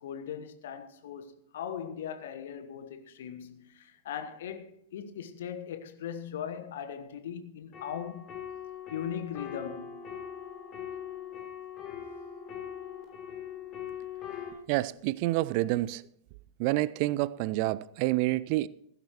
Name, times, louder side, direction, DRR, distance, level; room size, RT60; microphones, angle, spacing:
voice 1, 0.0-8.2 8.9-10.1, left 8 dB, 60° left, 1.2 m, -39 dB
sound 1, 7.7-14.5, left 8 dB, 30° left, 3.4 m, -41 dB
voice 2, 14.7-16.0 16.6-18.7, right 18 dB, 45° right, 0.4 m, -28 dB
17.0 x 15.0 x 3.1 m
figure-of-eight pair, 90°, 0 cm